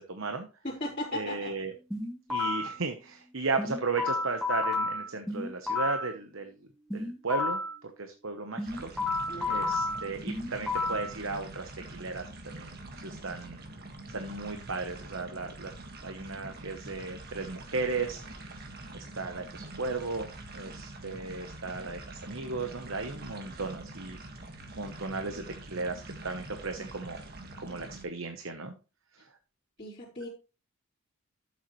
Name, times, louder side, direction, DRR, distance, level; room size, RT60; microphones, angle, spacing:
voice 1, 0.0-0.5 1.1-1.7 2.3-6.6 6.9-8.9 9.4-13.6 14.1-15.7 16.0-18.6 18.9-24.2 24.7-27.2 27.6-28.7, right 3 dB, 65° right, 6 dB, 1.0 m, -35 dB
voice 2, 0.6-1.5 2.3-2.5 9.3-9.7 29.8-30.3, left 1 dB, 30° left, -10 dB, 3.9 m, -37 dB
sound 1, 1.9-2.8 3.6-6.1 6.9-7.8 8.6-11.1, left 2 dB, ahead, 2.8 m, -31 dB
sound 2, 8.7-28.0, right 2 dB, 45° right, 1.7 m, -45 dB
12.5 x 7.3 x 3.1 m, 0.32 s
head